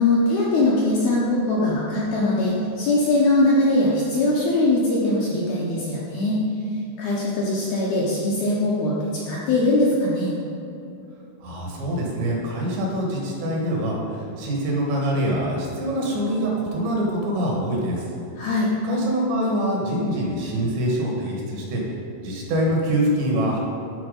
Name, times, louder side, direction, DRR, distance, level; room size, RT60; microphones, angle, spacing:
voice 1, 0.0-6.4 7.0-10.4 18.4-18.7, left 2 dB, 70° left, -6 dB, 2.4 m, -21 dB
voice 2, 11.4-18.0 18.8-21.8 22.2-23.6, right 1 dB, 70° right, -2 dB, 3.5 m, -24 dB
13.5 x 4.5 x 5.4 m, 2.7 s
omnidirectional pair, 5.7 m